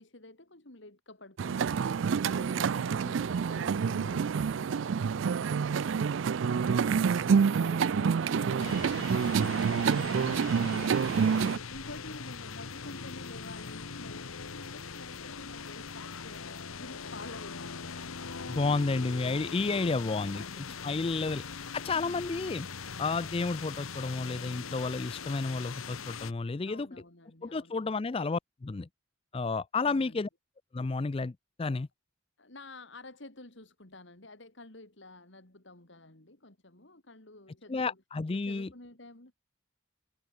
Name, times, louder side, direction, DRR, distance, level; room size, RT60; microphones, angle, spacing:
voice 1, 0.0-14.2 14.5-19.1 20.1-20.8 21.2-22.2 22.7-23.0 26.6-27.9 29.9-30.3 32.4-38.0 38.3-39.3, left 2 dB, 60° left, 2.9 m, -50 dB
sound 1, 1.4-11.6, right 6 dB, 65° right, 0.4 m, -27 dB
sound 2, 8.6-26.3, left 5 dB, 90° left, 1.3 m, -41 dB
voice 2, 18.5-20.4 20.8-21.4 21.7-22.7 23.0-26.9 27.4-28.9 29.3-30.3 30.7-31.3 31.6-31.9 37.7-38.7, left 3 dB, 25° left, 0.4 m, -31 dB
head